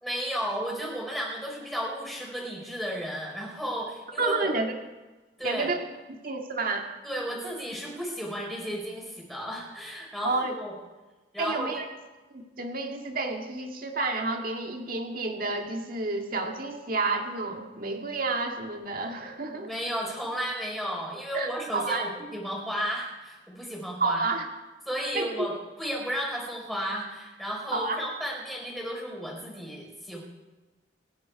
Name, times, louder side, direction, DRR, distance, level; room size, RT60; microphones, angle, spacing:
voice 1, 0.0-4.5 5.4-5.7 7.0-10.7 11.3-11.7 19.5-24.3 24.8-25.5 25.8-30.2, equal, ahead, -2 dB, 4.7 m, -33 dB
voice 2, 4.2-4.7 5.4-5.8 6.2-6.9 10.2-10.5 11.4-11.8 12.3-19.7 21.3-22.1 24.0-24.5 25.1-25.5 27.7-28.0, right 3 dB, 45° right, 3 dB, 2.0 m, -30 dB
27.5 x 10.0 x 4.8 m, 1.2 s
head